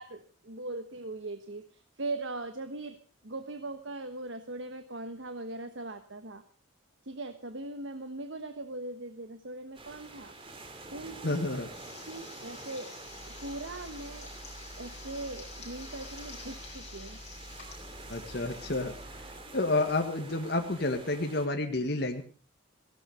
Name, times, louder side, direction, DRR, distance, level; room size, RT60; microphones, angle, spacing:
voice 1, 0.0-3.0 3.2-6.4 7.0-10.3 10.9-11.5 12.1-12.9 13.2-14.3 14.8-17.2, right 2 dB, 75° right, 9 dB, 1.3 m, -40 dB
sound 1, 9.7-21.5, right 2 dB, 30° right, 2.6 m, -47 dB
voice 2, 11.2-11.7 18.1-18.9 19.5-22.2, left 2 dB, 55° left, 4 dB, 1.8 m, -30 dB
sound 2, 11.7-19.1, left 5 dB, 35° left, 6.6 m, -50 dB
sound 3, 13.0-19.6, equal, 5° right, 5.3 m, -50 dB
17.0 x 16.5 x 4.9 m, 0.36 s
head